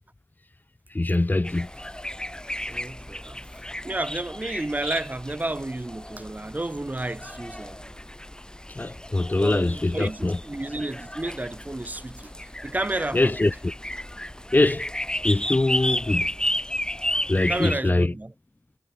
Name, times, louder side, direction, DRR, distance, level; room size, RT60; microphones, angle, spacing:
voice 1, 0.9-1.7 8.7-10.4 13.1-13.7 14.5-14.9 15.2-16.3 17.3-18.1, left 2 dB, 30° left, 1.2 m, -23 dB
sound 1, 1.4-17.7, left 1 dB, 15° left, 4.8 m, -33 dB
voice 2, 2.7-7.9 9.3-13.3 17.3-18.3, right 2 dB, 30° right, 1.2 m, -32 dB
wide cardioid pair, 70°, 6 cm